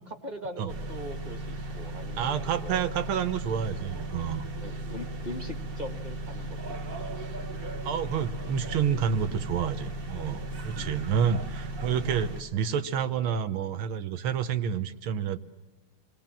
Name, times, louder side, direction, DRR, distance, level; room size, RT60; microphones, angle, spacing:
voice 1, 0.2-2.9 4.6-6.6 6.9-7.5 9.2-9.3 10.7-11.0, equal, 25° right, 6 dB, 1.4 m, -41 dB
sound 1, 0.7-12.4, right 1 dB, 40° right, 0.8 m, -36 dB
voice 2, 2.2-4.5 7.8-15.4, right 8 dB, 75° right, 11 dB, 1.8 m, -29 dB
28.5 x 21.0 x 7.5 m, 1.2 s
omnidirectional pair, 2.4 m